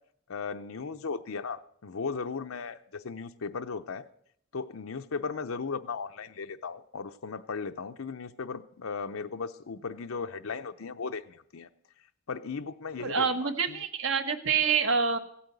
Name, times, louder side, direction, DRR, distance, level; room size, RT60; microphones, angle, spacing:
voice 1, 0.3-4.1 4.5-11.7 12.3-13.8, left 5 dB, 80° left, 8 dB, 0.7 m, -36 dB
voice 2, 13.0-15.2, right 5 dB, 65° right, 8 dB, 1.3 m, -27 dB
16.0 x 8.7 x 8.0 m, 0.69 s
head